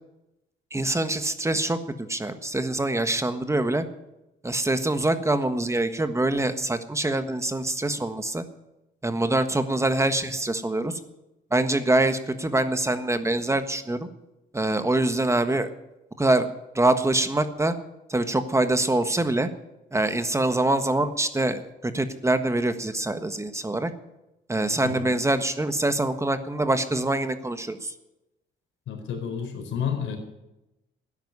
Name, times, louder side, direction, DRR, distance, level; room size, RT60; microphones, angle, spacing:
voice 1, 0.7-3.8 4.4-8.4 9.0-10.9 11.5-14.1 14.5-15.7 16.2-16.5 16.7-17.7 18.1-19.5 19.9-23.9 24.5-27.9, right 2 dB, 15° right, 9 dB, 1.4 m, -24 dB
voice 2, 28.9-30.2, left 7 dB, 75° left, 4 dB, 4.4 m, -30 dB
13.0 x 10.0 x 9.8 m, 0.93 s
cardioid pair, 90°, 20 cm